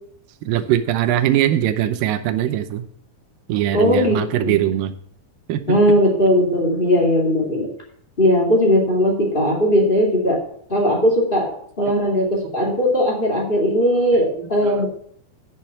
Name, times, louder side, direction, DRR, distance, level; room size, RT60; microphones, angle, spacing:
voice 1, 0.4-2.9 3.5-4.9 5.5-6.0 11.9-12.0 14.4-14.9, right 12 dB, 85° right, 10 dB, 2.5 m, -21 dB
voice 2, 3.7-4.6 5.7-7.7 8.2-10.4 10.7-14.9, equal, 20° left, -2 dB, 2.1 m, -18 dB
10.5 x 6.4 x 5.6 m, 0.63 s
omnidirectional pair, 3.9 m